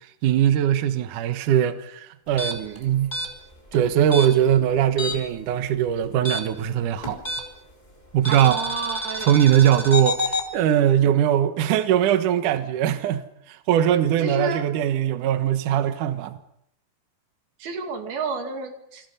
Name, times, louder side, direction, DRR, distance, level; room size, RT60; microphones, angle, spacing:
voice 1, 0.2-3.2 3.7-7.2 8.1-8.7 9.2-13.2 13.5-16.4, right 10 dB, 65° right, 2.6 m, -21 dB
sound 1, 2.3-5.4 5.6-7.7 8.2-10.5, left 1 dB, 10° left, 3.1 m, -29 dB
voice 2, 8.3-9.3 14.2-14.7 17.6-19.1, right 4 dB, 90° right, 4.3 m, -30 dB
28.5 x 22.5 x 5.6 m
omnidirectional pair, 4.2 m